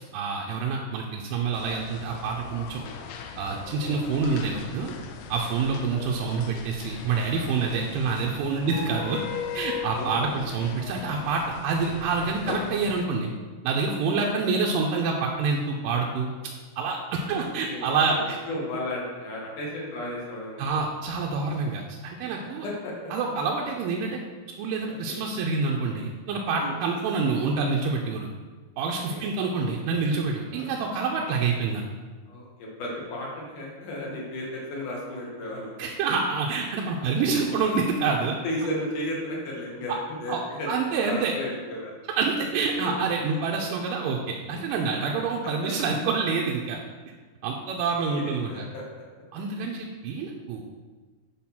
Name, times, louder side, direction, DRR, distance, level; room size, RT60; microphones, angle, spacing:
voice 1, 0.1-2.8 3.4-4.9 5.3-9.2 9.5-13.3 13.6-16.3 16.8-18.4 20.6-22.7 23.1-24.2 24.6-28.3 28.8-31.8 35.8-38.4 40.3-40.4 40.7-41.4 42.2-46.8 47.4-48.6 49.3-50.6, right 4 dB, 80° right, -1 dB, 2.1 m, -27 dB
sound 1, 1.5-13.1, left 7 dB, 90° left, 2.5 m, -38 dB
voice 2, 3.6-3.9 5.5-5.9 8.5-8.9 9.9-10.3 14.2-14.3 17.2-20.7 22.4-23.1 25.1-25.2 26.5-26.8 28.8-29.5 30.5-30.8 32.3-35.9 38.4-40.7 41.0-42.0 42.7-42.9 45.6-45.7 48.2-48.8, left 1 dB, 65° left, -3 dB, 2.6 m, -35 dB
7.7 x 3.8 x 5.8 m, 1.4 s
omnidirectional pair, 4.3 m